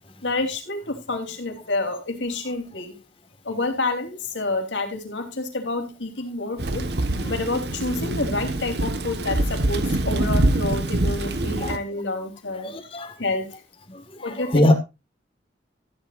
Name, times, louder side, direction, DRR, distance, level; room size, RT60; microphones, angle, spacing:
voice 1, 0.2-3.0 3.4-6.9 7.3-12.7 13.2-13.6 14.2-14.7, left 2 dB, 85° left, 3.5 m, -28 dB
Thunder / Rain, 6.6-11.8, right 1 dB, 60° right, 1.3 m, -24 dB
voice 2, 12.6-13.1 13.9-14.7, left 1 dB, 30° left, 1.7 m, -22 dB
15.0 x 11.0 x 2.5 m
head